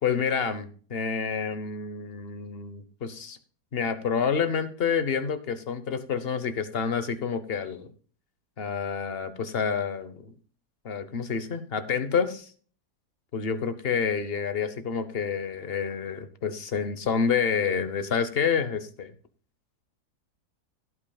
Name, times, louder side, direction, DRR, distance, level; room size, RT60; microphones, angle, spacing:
voice 1, 0.0-3.4 3.7-7.9 8.6-10.3 10.8-12.5 13.3-19.1, left 6 dB, 40° left, 10 dB, 1.0 m, -28 dB
17.0 x 8.7 x 2.3 m, 0.43 s
omnidirectional pair, 1.7 m